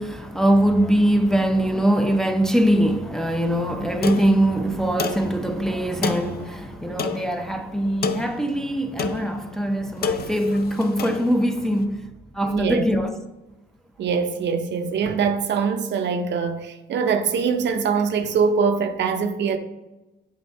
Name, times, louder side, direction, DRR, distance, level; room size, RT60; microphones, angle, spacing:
voice 1, 0.0-12.0 12.3-13.2, right 1 dB, ahead, 0.5 m, -22 dB
sound 1, 4.0-11.8, left 5 dB, 50° left, 0.5 m, -31 dB
voice 2, 12.4-12.9 14.0-19.6, right 5 dB, 65° right, 0.6 m, -23 dB
7.9 x 2.7 x 4.5 m
cardioid pair, 90°, 20 cm